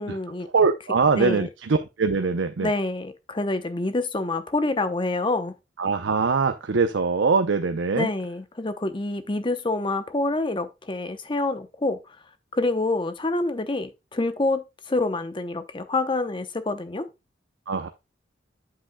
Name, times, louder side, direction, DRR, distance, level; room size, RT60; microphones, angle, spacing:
voice 1, 0.0-0.5 1.2-1.5 2.6-5.5 7.9-12.0 12.5-17.1, left 2 dB, 25° left, 0.7 m, -27 dB
voice 2, 0.5-2.7 5.8-8.1 17.7-17.9, right 4 dB, 80° right, 0.6 m, -22 dB
8.7 x 7.8 x 2.2 m
head